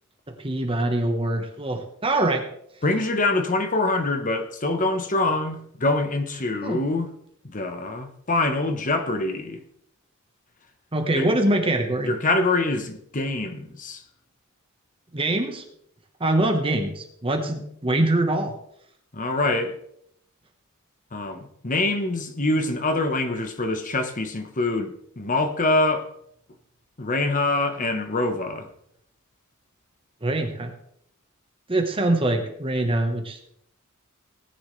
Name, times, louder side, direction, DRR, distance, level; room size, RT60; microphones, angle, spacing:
voice 1, 0.3-2.4 6.6-6.8 10.9-12.1 15.1-15.6 16.2-18.6 30.2-30.7 31.7-33.4, right 1 dB, 25° right, 1.2 m, -24 dB
voice 2, 2.8-7.1 7.4-9.6 11.1-11.3 12.0-14.0 19.1-19.8 21.1-26.1 27.0-28.7, left 2 dB, 40° left, 1.1 m, -25 dB
18.5 x 9.8 x 3.3 m
head